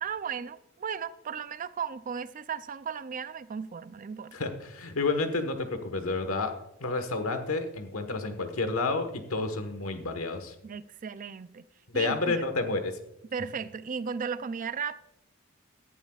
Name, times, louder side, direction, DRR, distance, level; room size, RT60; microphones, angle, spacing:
voice 1, 0.0-4.4 10.6-11.6 11.9-12.4 13.3-15.0, right 6 dB, 40° right, 0.4 m, -35 dB
voice 2, 4.3-6.5 6.8-10.5 11.9-12.9, left 3 dB, 80° left, 1.4 m, -30 dB
17.5 x 11.5 x 2.4 m
head